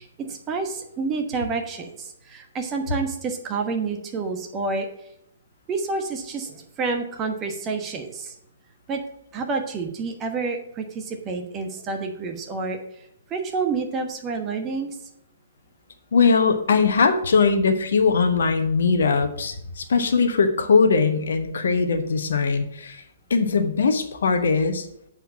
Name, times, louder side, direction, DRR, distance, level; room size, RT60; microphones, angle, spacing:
voice 1, 0.0-4.9 5.7-8.3 8.9-9.0 9.3-12.8 13.3-14.9, right 4 dB, 20° right, 4 dB, 1.2 m, -29 dB
voice 2, 16.1-23.0 23.3-24.9, left 4 dB, 55° left, 7 dB, 1.0 m, -20 dB
8.1 x 4.5 x 7.1 m, 0.75 s
figure-of-eight pair, 120°, 0 cm